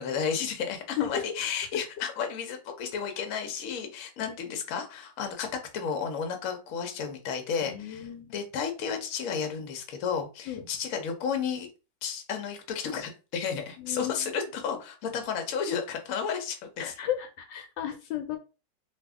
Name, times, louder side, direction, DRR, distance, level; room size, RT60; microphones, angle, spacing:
voice 1, 0.0-11.7 12.0-16.9, left 6 dB, 60° left, 5 dB, 0.9 m, -32 dB
voice 2, 1.0-1.8 4.2-4.3 7.6-8.3 10.5-10.7 13.8-14.3 16.8-18.4, left 10 dB, 75° left, 6 dB, 1.2 m, -34 dB
2.6 x 2.6 x 3.5 m, 0.31 s
omnidirectional pair, 2.0 m